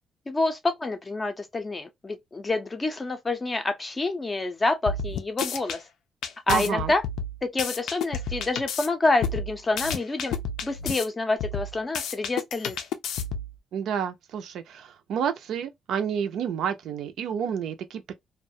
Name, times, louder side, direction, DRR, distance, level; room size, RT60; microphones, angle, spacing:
voice 1, 0.3-5.8 6.5-7.0 7.4-10.4 10.6-12.8, left 2 dB, 20° left, 0.5 m, -27 dB
sound 1, 4.9-5.8 6.2-8.9 9.2-11.0 11.4-13.5, left 5 dB, 80° left, 0.4 m, -31 dB
voice 2, 6.5-6.9 13.7-18.1, right 8 dB, 75° right, 0.4 m, -29 dB
2.3 x 2.1 x 2.6 m
cardioid pair, 170°, 0 cm